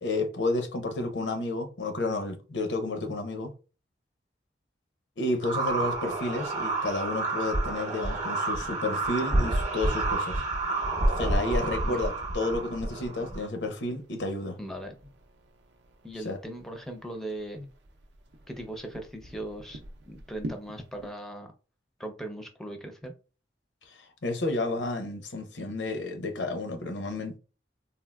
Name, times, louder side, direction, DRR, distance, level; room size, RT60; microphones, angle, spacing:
voice 1, 0.0-3.5 5.2-10.4 11.2-14.6 16.2-16.4 23.9-27.4, left 2 dB, 85° left, 0.7 m, -31 dB
sound 1, 5.4-13.5, right 2 dB, 45° right, 0.8 m, -29 dB
sound 2, 9.6-21.1, right 1 dB, 75° right, 0.5 m, -49 dB
voice 2, 11.6-12.0 14.6-15.1 16.0-17.7 18.5-19.8 20.1-21.5 22.0-23.2, right 1 dB, 5° left, 0.4 m, -39 dB
3.6 x 2.3 x 2.2 m
head